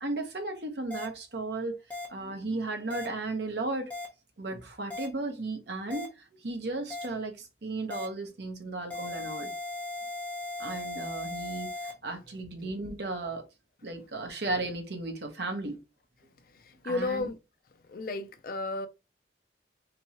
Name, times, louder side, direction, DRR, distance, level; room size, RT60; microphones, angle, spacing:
voice 1, 0.0-1.8 2.1-3.9 4.4-9.5 10.6-13.4 13.8-15.8 16.8-17.3 17.9-18.1, right 2 dB, 65° right, 0.9 m, -35 dB
sound 1, 0.9-1.1 1.9-2.1 2.9-3.1 3.9-4.1 4.9-5.1 5.9-6.1 6.9-7.1 7.9-8.1 8.9-11.9, left 2 dB, 10° left, 0.8 m, -37 dB
voice 2, 16.9-17.4 17.9-18.9, left 2 dB, 50° left, 0.4 m, -32 dB
3.4 x 3.0 x 2.8 m
head